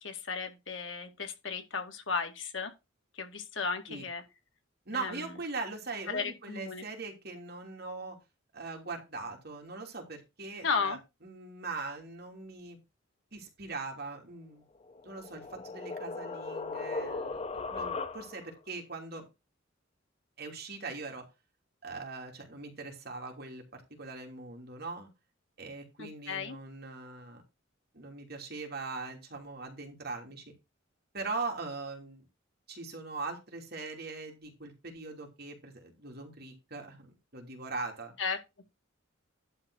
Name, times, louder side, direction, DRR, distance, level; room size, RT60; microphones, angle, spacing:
voice 1, 0.0-2.7 3.2-4.2 4.9-5.2 6.1-6.8 10.6-11.0 26.0-26.6 38.2-38.4, left 5 dB, 70° left, 2.1 m, -34 dB
voice 2, 4.9-8.2 8.5-12.8 13.3-14.6 15.0-19.3 20.4-21.3 21.8-25.1 25.6-27.4 27.9-30.4 31.1-32.3 32.7-38.1, right 3 dB, 55° right, 3.0 m, -41 dB
sound 1, 14.8-18.6, left 3 dB, 30° left, 0.7 m, -38 dB
11.5 x 4.0 x 6.3 m
head